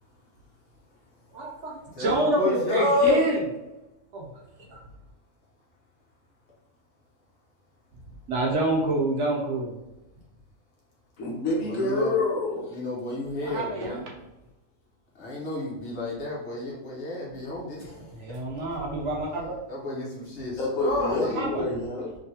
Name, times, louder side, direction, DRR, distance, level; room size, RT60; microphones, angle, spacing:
voice 1, 1.3-3.4 4.1-4.3 4.7-4.8 8.3-9.8 13.4-14.0 18.1-19.6 21.2-21.6, right 2 dB, 65° right, -2 dB, 0.9 m, -27 dB
voice 2, 1.9-3.2 11.6-12.1 12.7-14.0 15.1-18.1 19.7-21.4, left 2 dB, 55° left, -4 dB, 1.1 m, -29 dB
voice 3, 11.2-12.8 20.6-22.2, left 2 dB, 75° left, -3 dB, 1.2 m, -27 dB
3.1 x 2.7 x 2.7 m, 0.98 s
omnidirectional pair, 1.5 m